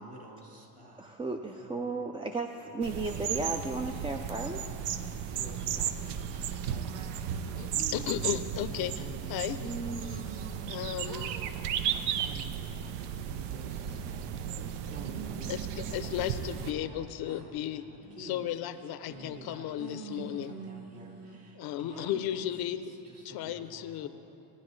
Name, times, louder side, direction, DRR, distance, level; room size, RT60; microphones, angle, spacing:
voice 1, 0.0-1.1 1.6-2.0 2.6-2.7 3.1-3.2 4.4-6.0 6.3-7.3 7.7-8.1 8.6-10.2 11.5-11.6 11.9-16.2 16.6-17.9 18.2-18.5 19.1-22.1 23.0-24.1, right 1 dB, 40° right, 0 dB, 2.3 m, -50 dB
voice 2, 1.0-4.6, right 3 dB, 15° right, 3 dB, 0.3 m, -34 dB
sound 1, 2.8-16.7, right 8 dB, 85° right, 0.6 m, -35 dB
voice 3, 7.6-9.6 10.1-10.2 10.7-11.4 15.5-17.8 18.2-20.6 21.5-22.9 23.2-24.1, left 12 dB, 65° left, 11 dB, 0.6 m, -35 dB
sound 2, 9.6-10.7 11.0-11.5 11.9-12.3 12.8-13.4 13.9-14.6 15.0-16.7 17.3-17.4 18.0-18.4 19.0-19.5 19.8-21.4 21.9-22.5, right 4 dB, 65° right, 1.4 m, -45 dB
19.0 x 9.6 x 3.2 m, 2.8 s
cardioid pair, 115°, 40 cm